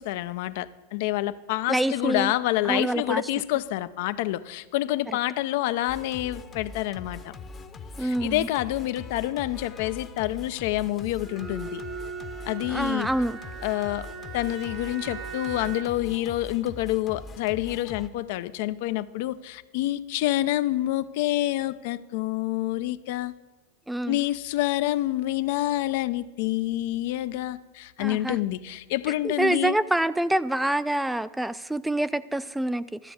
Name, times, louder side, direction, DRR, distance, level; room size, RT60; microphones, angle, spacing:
voice 1, 0.0-7.3 8.0-11.8 12.5-13.1 13.6-14.1 14.3-23.3 24.1-29.8, left 15 dB, 65° left, 14 dB, 0.5 m, -27 dB
voice 2, 1.7-2.3 2.6-3.2 5.1-5.2 8.0-8.5 12.7-13.4 23.9-24.2 28.0-28.4 29.2-33.1, right 1 dB, 5° right, 16 dB, 0.3 m, -26 dB
Singing, 5.9-18.1, left 3 dB, 25° left, 0.8 m, -42 dB
Bowed string instrument, 11.2-16.1, right 6 dB, 40° right, 0.9 m, -39 dB
12.5 x 6.9 x 7.7 m, 1.3 s
supercardioid pair, 120°, 0 cm